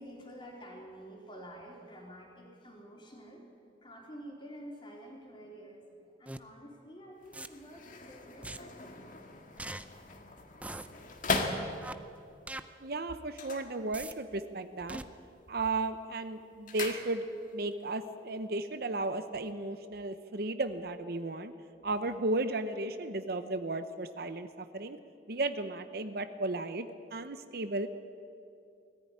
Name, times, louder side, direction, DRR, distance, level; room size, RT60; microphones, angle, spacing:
voice 1, 0.0-3.4 3.8-9.0 9.3-9.5, equal, 30° left, -1 dB, 3.8 m, -49 dB
sound 1, 6.3-6.4 7.3-7.5 8.4-8.6 9.6-9.9 10.6-10.9 11.8-11.9 12.5-12.6 13.9-14.1 14.9-15.0, right 2 dB, 10° right, 0.5 m, -40 dB
sound 2, 7.2-12.2 13.2-14.4 14.7-15.2 15.5-17.6 17.9-18.0, left 3 dB, 45° left, 1.8 m, -39 dB
voice 2, 12.8-15.0 15.5-17.2 17.5-21.5 21.8-25.0 25.3-27.9, right 2 dB, 60° right, 10 dB, 0.8 m, -34 dB
19.5 x 14.5 x 9.7 m, 2.6 s
head